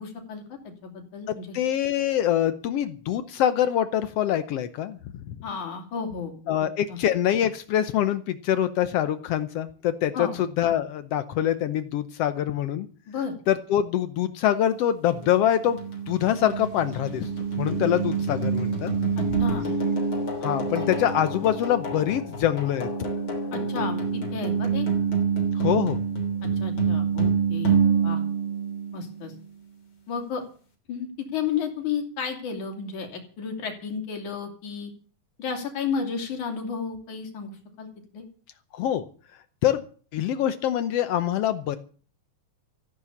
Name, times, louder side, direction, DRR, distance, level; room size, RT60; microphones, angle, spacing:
voice 1, 0.0-1.6 5.4-6.4 6.9-7.0 10.1-10.4 13.1-13.3 19.2-19.7 20.8-20.9 23.5-24.9 26.4-27.8 28.0-28.2 28.9-29.3 30.1-30.4 30.9-34.9 35.4-37.9 38.1-38.2, left 6 dB, 60° left, 4 dB, 4.2 m, -32 dB
voice 2, 1.5-5.3 6.5-10.3 10.6-12.9 13.5-15.8 16.1-17.3 17.6-18.9 20.4-22.9 25.5-26.0 38.7-39.0 39.6-39.8 40.1-41.8, left 11 dB, 85° left, 11 dB, 1.3 m, -24 dB
sound 1, 15.1-29.3, right 5 dB, 30° left, 3.5 m, -27 dB
sound 2, 16.1-21.7, right 7 dB, 55° right, 4.7 m, -47 dB
14.5 x 11.0 x 7.2 m, 0.42 s
omnidirectional pair, 3.9 m